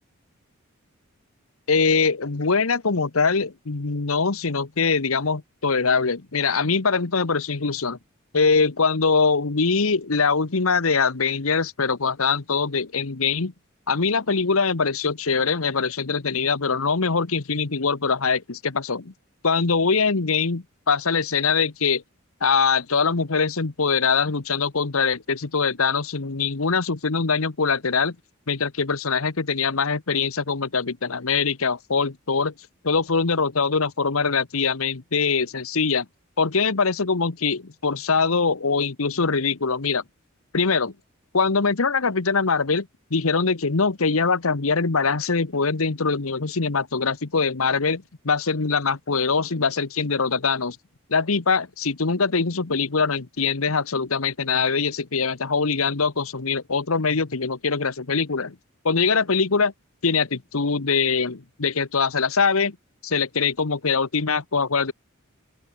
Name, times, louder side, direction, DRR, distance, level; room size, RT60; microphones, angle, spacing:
voice 1, 1.7-8.0 8.3-13.5 13.9-19.1 19.4-22.0 22.4-28.1 28.5-32.5 32.8-36.1 36.4-40.0 40.5-40.9 41.3-50.8 51.1-58.5 58.8-59.7 60.0-62.8 63.0-64.9, left 5 dB, 80° left, 1.2 m, -23 dB
open air
head